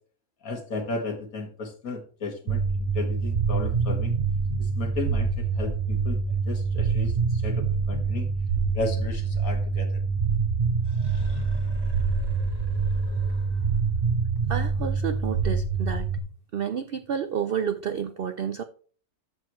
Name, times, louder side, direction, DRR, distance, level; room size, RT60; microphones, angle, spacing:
voice 1, 0.4-4.1 4.6-6.2 6.5-8.3 8.7-10.0, left 3 dB, 65° left, 4 dB, 2.1 m, -34 dB
sound 1, 2.5-16.2, right 5 dB, 45° right, 0.8 m, -26 dB
sound 2, 10.8-13.9, equal, 15° right, 2.1 m, -36 dB
voice 2, 14.5-16.1 16.5-18.6, right 8 dB, 65° right, 9 dB, 0.5 m, -30 dB
13.5 x 6.2 x 3.1 m, 0.43 s
omnidirectional pair, 1.6 m